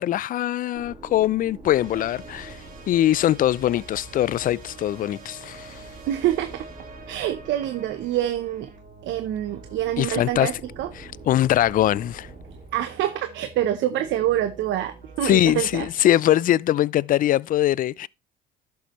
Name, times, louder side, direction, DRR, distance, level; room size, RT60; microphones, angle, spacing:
voice 1, 0.0-2.6 2.9-5.8 10.0-10.5 11.0-12.3 15.2-18.1, left 13 dB, 45° left, 0.4 m, -22 dB
sound 1, 0.7-12.7, right 1 dB, 30° right, 3.3 m, -48 dB
sound 2, 1.7-15.9, right 3 dB, 45° right, 3.6 m, -45 dB
voice 2, 6.1-6.7 7.1-8.7 9.0-10.5 10.8-10.9 12.7-15.9, right 12 dB, 65° right, 0.8 m, -26 dB
11.0 x 7.0 x 3.1 m
supercardioid pair, 85°, 20 cm